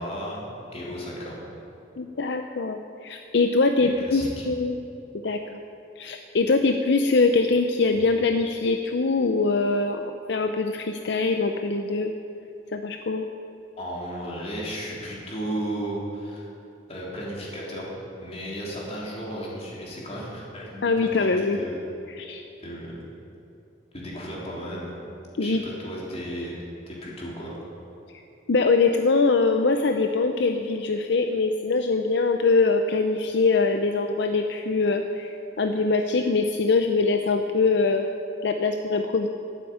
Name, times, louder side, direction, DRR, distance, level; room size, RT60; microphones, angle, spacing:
voice 1, 0.0-1.4 3.8-4.4 13.8-16.5 16.9-21.8 22.6-22.9 23.9-24.9 25.4-26.6 26.9-27.5, equal, 35° left, -4 dB, 3.5 m, -34 dB
voice 2, 2.0-4.8 5.2-5.4 6.0-12.1 12.7-13.3 20.8-21.6 22.2-22.4 25.4-25.6 28.5-38.1 38.4-39.3, left 3 dB, 65° left, 6 dB, 0.6 m, -23 dB
12.5 x 9.1 x 8.7 m, 2.9 s
head